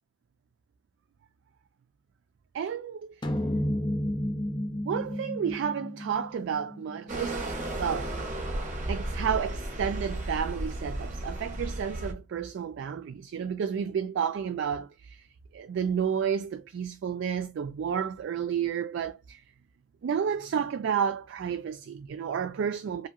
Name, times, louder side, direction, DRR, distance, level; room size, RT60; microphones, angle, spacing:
voice 1, 2.5-3.2 4.8-7.4 7.8-8.1 8.9-15.2 15.5-19.4 20.0-23.1, right 7 dB, 65° right, 0.3 m, -31 dB
sound 1, 3.2-7.8, equal, 25° left, 0.5 m, -32 dB
sound 2, 7.1-12.1, right 1 dB, 40° right, 0.7 m, -34 dB
2.8 x 2.6 x 2.4 m
head